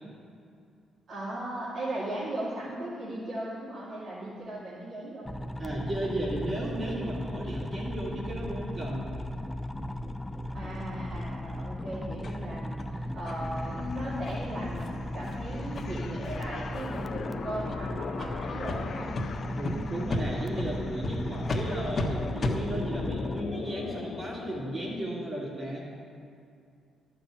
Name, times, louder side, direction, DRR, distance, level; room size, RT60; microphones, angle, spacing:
voice 1, 1.1-5.3 10.5-19.1 21.6-21.8, right 1 dB, 50° right, -9 dB, 2.7 m, -37 dB
sound 1, 5.2-23.4, left 1 dB, 5° left, 0.4 m, -36 dB
voice 2, 5.6-9.1 19.5-25.9, right 1 dB, 35° right, -9 dB, 2.7 m, -34 dB
sound 2, 12.2-12.3 12.8-12.9 13.3-13.4 13.7-13.8 14.2-14.3 14.7-14.9 15.2-15.3 15.7-15.8 16.2-16.4 16.7-17.1 17.6-17.8 18.2-18.3 18.7-18.8 19.1-19.2 19.6-19.7 20.1-20.2 20.6-20.7 21.0-21.1 21.5-21.6 21.9-22.1 22.4-22.6, left 2 dB, 40° left, 1.5 m, -32 dB
sound 3, 13.3-25.0, left 6 dB, 55° left, 0.6 m, -41 dB
11.5 x 5.8 x 7.8 m, 2.4 s
cardioid pair, 90°, 0 cm